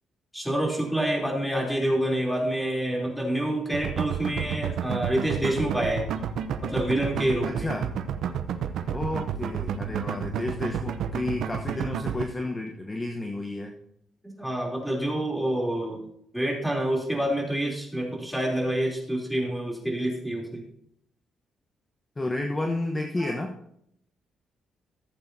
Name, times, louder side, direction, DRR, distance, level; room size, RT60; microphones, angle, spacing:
voice 1, 0.3-6.1 6.6-7.7 14.2-16.1 16.3-20.6 23.2-23.3, right 1 dB, ahead, -1 dB, 3.2 m, -27 dB
sound 1, 3.7-12.2, right 8 dB, 75° right, 0.7 m, -30 dB
voice 2, 7.4-7.9 8.9-13.8 22.2-23.5, left 2 dB, 20° left, 3 dB, 1.0 m, -31 dB
15.0 x 7.9 x 2.7 m, 0.72 s
cardioid pair, 90°, 0 cm